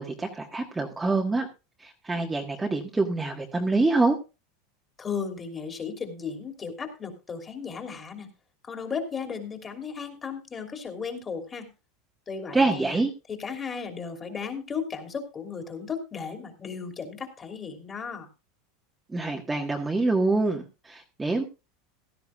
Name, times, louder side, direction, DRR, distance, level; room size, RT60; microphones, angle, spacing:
voice 1, 0.0-1.5 1.8-4.2 12.5-13.1 19.1-21.4, right 3 dB, 10° right, 1 dB, 1.5 m, -26 dB
voice 2, 5.0-8.3 8.6-11.7 12.3-13.0 13.3-18.3, left 6 dB, 20° left, 5 dB, 2.9 m, -35 dB
16.5 x 13.0 x 2.4 m, 0.28 s
supercardioid pair, 140°, 0 cm